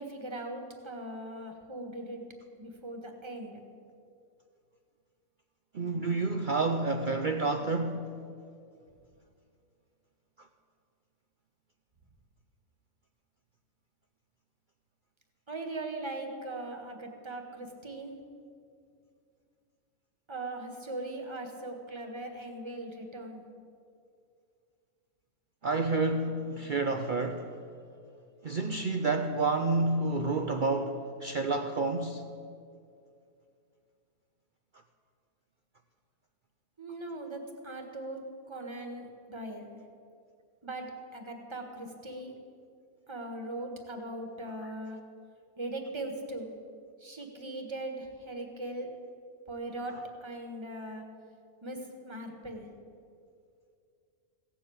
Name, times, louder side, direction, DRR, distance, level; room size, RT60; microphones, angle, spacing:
voice 1, 0.0-2.2 2.6-3.6 15.5-18.1 20.3-23.4 36.8-38.2 38.5-39.6 40.6-40.9 41.1-42.3 43.1-45.0 45.6-46.5 47.0-48.9 49.5-49.9 50.2-51.0 51.6-52.6, right 2 dB, 20° right, 1.4 m, -39 dB
voice 2, 5.7-8.1 25.6-27.5 28.4-32.2, right 3 dB, 80° right, 0.4 m, -29 dB
16.0 x 7.5 x 8.5 m
omnidirectional pair, 1.6 m